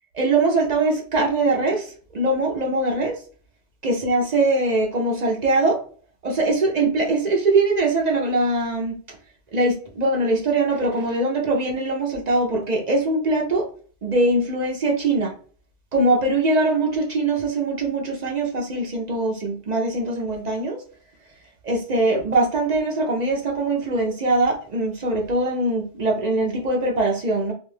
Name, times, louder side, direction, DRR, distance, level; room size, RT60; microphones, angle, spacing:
voice 1, 0.1-3.2 3.8-5.8 6.2-8.9 9.5-13.7 14.0-15.3 15.9-20.8 21.6-27.5, right 2 dB, 50° right, 0.6 m, -22 dB
2.4 x 2.2 x 3.1 m
omnidirectional pair, 1.1 m